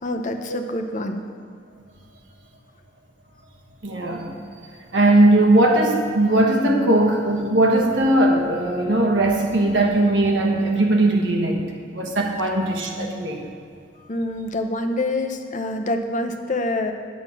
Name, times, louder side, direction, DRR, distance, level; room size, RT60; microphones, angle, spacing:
voice 1, 0.0-1.2 14.1-16.9, left 2 dB, 45° left, 5 dB, 0.7 m, -26 dB
voice 2, 3.8-4.3 4.9-11.6 11.9-13.4, right 1 dB, 80° right, 2 dB, 1.3 m, -19 dB
9.9 x 7.5 x 5.8 m, 2.2 s
head